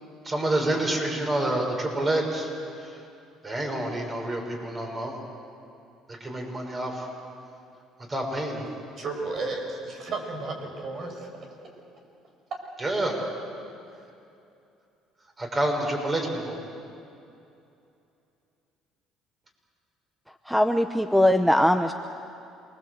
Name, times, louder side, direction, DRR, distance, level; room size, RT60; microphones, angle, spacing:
voice 1, 0.2-2.5 2.8-3.0 3.4-5.2 6.1-7.1 8.1-8.7 12.8-13.2 15.4-16.6, right 1 dB, 25° right, 1 dB, 6.4 m, -28 dB
voice 2, 9.0-11.3, right 3 dB, 50° right, 2 dB, 6.3 m, -33 dB
voice 3, 20.5-21.9, left 1 dB, ahead, 8 dB, 0.8 m, -21 dB
28.0 x 21.5 x 8.2 m, 2.7 s
cardioid pair, 100°, 0 cm